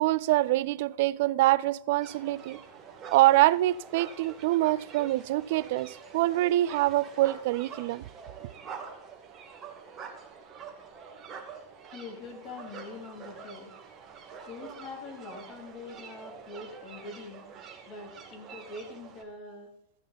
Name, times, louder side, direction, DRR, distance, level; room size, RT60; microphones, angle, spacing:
voice 1, 0.0-2.6 3.1-8.0, right 16 dB, 50° right, 0.4 m, -25 dB
sound 1, 2.0-19.2, right 6 dB, 25° right, 2.3 m, -46 dB
voice 2, 11.9-13.7 14.4-17.4 17.9-19.7, left 3 dB, 30° left, 3.1 m, -43 dB
14.0 x 9.7 x 4.2 m
figure-of-eight pair, 95°, 0 cm